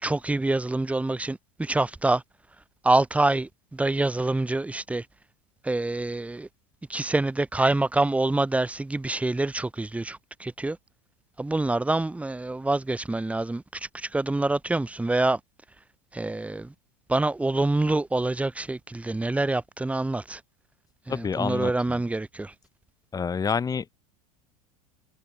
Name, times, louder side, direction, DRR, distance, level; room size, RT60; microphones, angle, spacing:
voice 1, 0.0-2.2 2.8-5.0 5.6-6.5 6.9-10.8 11.4-15.4 16.1-16.7 17.1-20.4 21.1-22.5, right 2 dB, 5° right, 4.9 m, -26 dB
voice 2, 21.1-22.0 23.1-23.9, left 6 dB, 20° left, 6.6 m, -28 dB
supercardioid pair, 125°, 18 cm